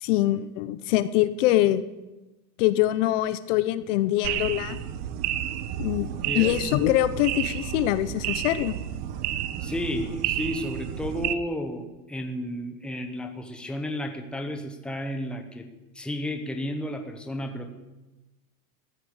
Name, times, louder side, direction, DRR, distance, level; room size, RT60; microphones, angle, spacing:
voice 1, 0.0-1.8 2.6-4.8 5.8-6.1 6.3-8.8, left 14 dB, 50° left, 14 dB, 0.8 m, -24 dB
sound 1, 4.2-11.3, right 11 dB, 75° right, 1.3 m, -31 dB
voice 2, 6.2-6.6 9.6-15.7 15.9-17.7, left 1 dB, ahead, 5 dB, 0.9 m, -32 dB
15.0 x 10.5 x 8.1 m, 1.1 s
supercardioid pair, 165°, 46 cm